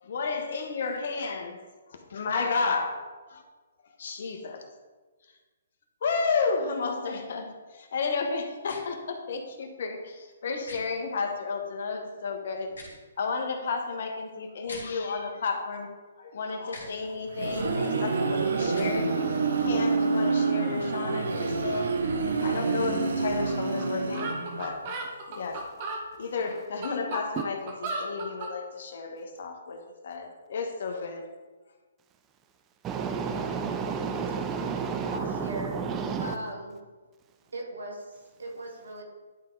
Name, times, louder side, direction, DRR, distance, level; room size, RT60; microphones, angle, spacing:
voice 1, 0.0-1.6 2.1-3.0 3.3-3.4 4.0-4.6 6.0-12.7 13.2-15.9 16.2-21.9 22.4-25.0 25.3-25.6 26.2-31.3, left 4 dB, 60° left, 1.2 m, -32 dB
sound 1, 8.6-8.8 10.6-10.8 12.6-13.0 14.6-14.9 16.7-16.9 18.7-18.9, left 2 dB, 80° left, 2.3 m, -43 dB
sound 2, 17.0-24.7, right 4 dB, 75° right, 1.0 m, -27 dB
sound 3, 23.5-23.6 23.8-23.9 24.1-26.0 26.6-28.5, right 2 dB, 40° right, 1.4 m, -35 dB
voice 2, 32.8-36.3, right 6 dB, 20° right, 0.5 m, -31 dB
voice 3, 35.0-35.9 36.2-36.8 37.5-39.0, right 1 dB, 90° right, 1.9 m, -39 dB
10.5 x 3.7 x 3.9 m
hypercardioid pair, 145°, 0 cm